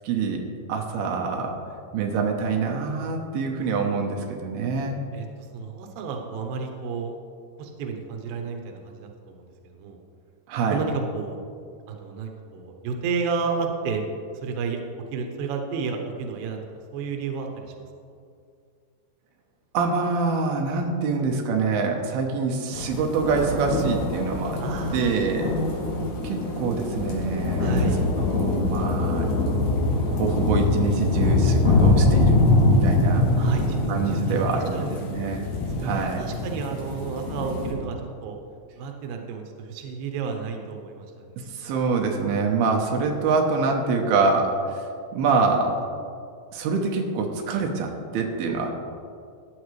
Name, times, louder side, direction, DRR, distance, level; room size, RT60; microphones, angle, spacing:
voice 1, 0.0-0.4 0.7-1.5 1.9-5.0 10.5-10.8 19.7-24.6 24.9-25.5 26.2-29.3 30.1-33.2 33.9-35.5 35.8-36.2 41.4-44.9 45.1-45.9 46.5-48.7, right 4 dB, 90° right, 1 dB, 2.9 m, -25 dB
voice 2, 5.1-7.1 7.6-10.0 10.7-11.4 11.9-14.1 14.4-14.8 15.1-16.6 16.9-17.7 24.6-25.6 27.6-28.1 33.4-35.2 35.8-38.4 38.8-41.3, right 5 dB, 75° right, 3 dB, 2.6 m, -32 dB
sound 1, 22.7-37.7, left 2 dB, 85° left, 3.4 m, -23 dB
14.0 x 9.3 x 3.2 m, 2.3 s
omnidirectional pair, 4.3 m